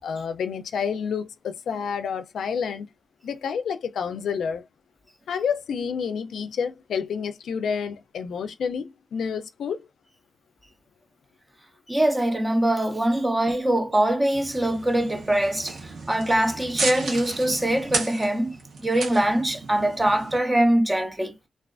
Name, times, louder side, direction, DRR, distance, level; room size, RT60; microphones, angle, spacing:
voice 1, 0.0-2.9 3.2-4.6 5.3-9.9, left 6 dB, 90° left, 0.3 m, -29 dB
voice 2, 11.9-15.8 16.1-21.3, right 1 dB, 20° right, 0.6 m, -23 dB
sound 1, 14.3-20.4, right 3 dB, 90° right, 0.7 m, -34 dB
2.4 x 2.3 x 2.3 m
cardioid pair, 75°, 0 cm